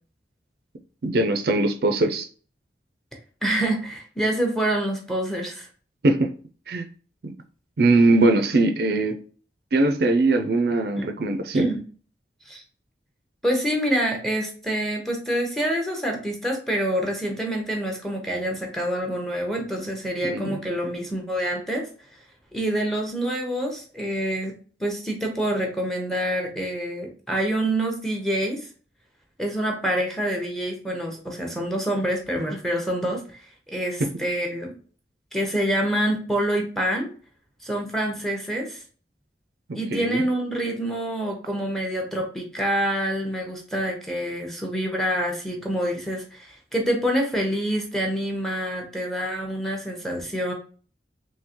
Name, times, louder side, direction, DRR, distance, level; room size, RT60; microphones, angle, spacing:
voice 1, 1.0-2.3 6.0-6.3 6.7-6.8 7.2-7.3 7.8-9.2 9.7-11.7 20.2-20.6 34.0-34.1 39.7-40.2, right 2 dB, 60° right, 5 dB, 0.4 m, -21 dB
voice 2, 3.4-5.7 11.0-11.1 11.5-11.8 12.5-12.6 13.4-21.9 22.5-24.5 24.8-28.7 29.4-34.7 35.3-37.1 37.6-38.8 39.7-50.5, right 1 dB, ahead, 1 dB, 0.7 m, -26 dB
3.6 x 2.8 x 2.9 m, 0.41 s
head